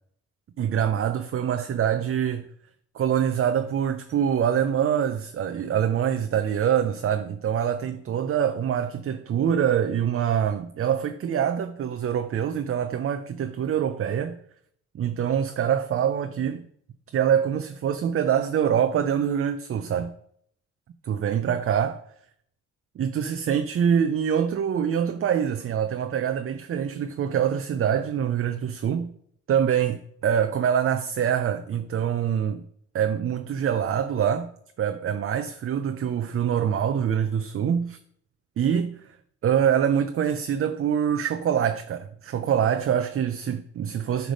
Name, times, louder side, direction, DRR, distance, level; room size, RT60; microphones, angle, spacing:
voice 1, 0.6-2.5 2.9-14.4 14.9-16.6 17.1-20.1 21.0-22.0 23.0-29.1 29.5-32.6 32.9-34.5 34.8-38.0 38.6-39.2 39.4-44.3, right 8 dB, 45° right, 0.6 m, -25 dB
10.0 x 3.5 x 6.3 m
cardioid pair, 90°, 30 cm